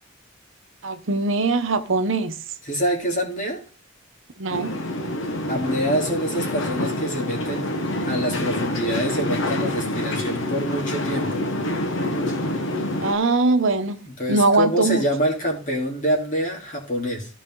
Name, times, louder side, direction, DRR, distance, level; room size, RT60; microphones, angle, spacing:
voice 1, 0.8-2.4 4.4-4.7 13.0-14.0 14.3-15.1, right 3 dB, 65° right, 1.0 m, -21 dB
voice 2, 2.7-3.6 5.5-7.7 8.0-11.4 14.0-17.3, equal, 40° left, 3.4 m, -25 dB
sound 1, 4.5-13.1, left 1 dB, 65° left, 1.3 m, -27 dB
15.0 x 5.0 x 3.9 m
head